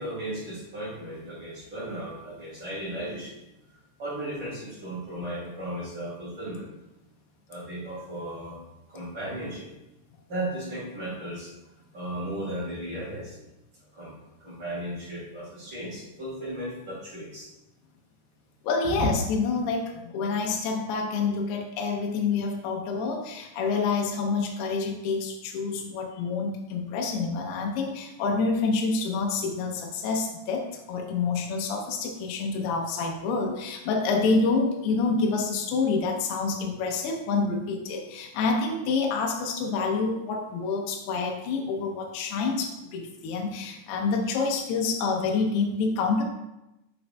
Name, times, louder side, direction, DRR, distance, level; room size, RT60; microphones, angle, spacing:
voice 1, 0.0-3.4 3.7-6.7 7.5-8.6 8.9-9.7 10.3-11.5 11.9-13.4 13.9-14.1 14.4-17.5, right 1 dB, 35° right, -9 dB, 2.2 m, -35 dB
voice 2, 18.6-46.2, left 4 dB, 80° left, 1 dB, 2.5 m, -27 dB
6.8 x 6.7 x 2.2 m, 0.94 s
omnidirectional pair, 5.0 m